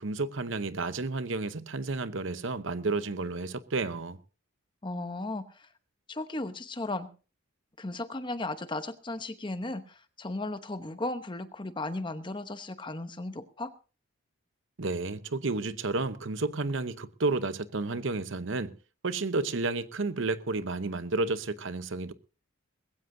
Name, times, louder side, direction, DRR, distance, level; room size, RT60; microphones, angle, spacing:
voice 1, 0.0-4.2 14.8-18.7 19.0-22.1, right 3 dB, 65° right, 0.8 m, -31 dB
voice 2, 4.8-5.7 6.1-7.1 7.8-13.7, left 2 dB, 25° left, 0.8 m, -36 dB
20.5 x 15.5 x 2.7 m
head